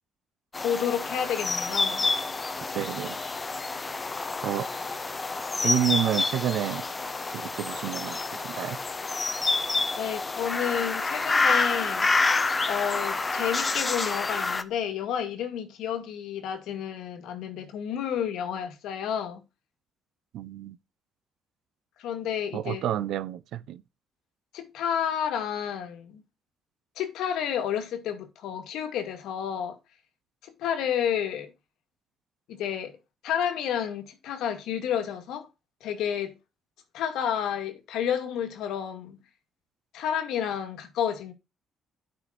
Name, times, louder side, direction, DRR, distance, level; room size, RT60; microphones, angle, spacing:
sound 1, 0.5-14.6, left 3 dB, 20° left, 0.9 m, -28 dB
voice 1, 0.6-2.1 10.0-12.1 12.7-19.4 22.0-22.9 24.5-26.2 27.0-29.8 30.4-31.5 32.5-33.0 33.2-35.5 35.8-36.4 36.9-39.2 39.9-41.3, left 9 dB, 90° left, 2.2 m, -30 dB
voice 2, 2.7-3.2 4.4-4.7 5.6-6.9 7.3-8.8 20.3-20.8 22.5-23.8, right 11 dB, 75° right, 0.8 m, -29 dB
11.5 x 5.8 x 4.3 m
cardioid pair, 140°, 0 cm